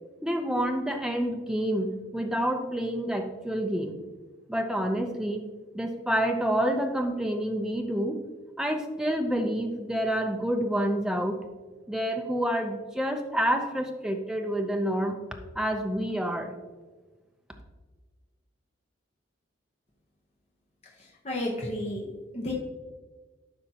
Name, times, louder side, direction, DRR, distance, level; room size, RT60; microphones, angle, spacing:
voice 1, 0.2-3.9 4.5-5.4 5.7-8.2 8.6-11.4 11.9-15.2 15.6-16.5, equal, 5° right, 3 dB, 0.6 m, -28 dB
voice 2, 21.2-22.1 22.3-22.5, left 1 dB, 30° left, -3 dB, 1.0 m, -31 dB
12.0 x 5.1 x 2.9 m, 1.3 s
head